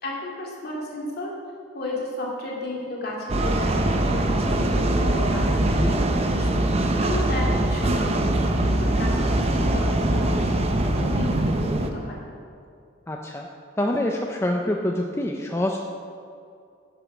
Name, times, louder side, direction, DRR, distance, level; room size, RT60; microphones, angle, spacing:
voice 1, 0.0-1.3 1.7-5.7 6.1-6.7 7.0-8.2 8.6-10.6 11.0-12.2, left 1 dB, 55° left, -3 dB, 2.4 m, -33 dB
sound 1, 3.3-11.9, right 1 dB, 30° right, 0.7 m, -22 dB
voice 2, 5.6-6.0 13.1-13.5 13.8-15.8, left 1 dB, 15° left, 1 dB, 0.5 m, -26 dB
9.6 x 7.1 x 6.0 m, 2.4 s
head